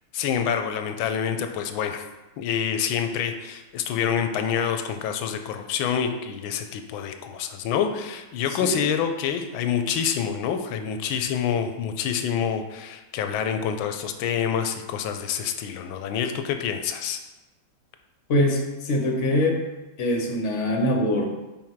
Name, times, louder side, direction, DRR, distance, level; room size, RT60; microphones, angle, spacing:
voice 1, 0.1-2.0 2.4-17.2, left 8 dB, 85° left, 7 dB, 1.4 m, -27 dB
voice 2, 8.5-8.8 18.3-19.7 20.0-21.3, left 1 dB, 50° left, 2 dB, 1.0 m, -23 dB
5.6 x 4.8 x 4.5 m, 1.1 s
omnidirectional pair, 2.2 m